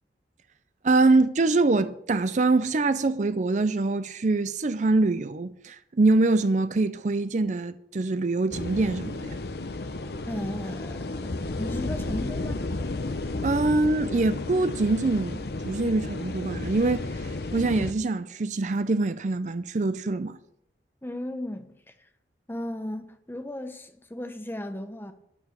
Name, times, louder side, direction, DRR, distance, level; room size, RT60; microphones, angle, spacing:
voice 1, 0.8-9.4 13.4-20.4, right 3 dB, 45° right, 0.5 m, -24 dB
sound 1, 8.5-17.9, left 2 dB, 60° left, 0.8 m, -33 dB
voice 2, 10.3-12.6 21.0-22.1 22.5-25.1, left 1 dB, 10° left, 0.8 m, -36 dB
12.0 x 4.8 x 7.9 m
head